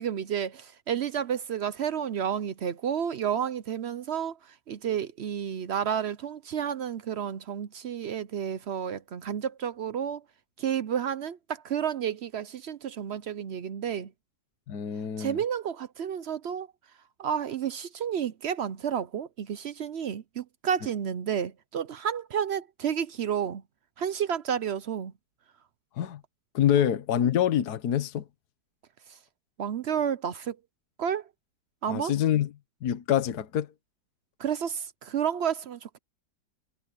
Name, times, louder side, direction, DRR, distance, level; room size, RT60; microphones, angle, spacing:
voice 1, 0.0-10.2 10.6-14.1 15.2-16.7 17.2-23.6 24.0-25.1 26.8-26.9 29.1-29.2 29.6-30.6 31.0-31.3 31.8-32.1 34.4-36.0, right 8 dB, 65° right, 0.6 m, -31 dB
voice 2, 14.7-15.4 26.0-26.2 26.5-28.2 31.9-32.5 32.8-33.7, left 10 dB, 65° left, 1.6 m, -26 dB
omnidirectional pair, 1.9 m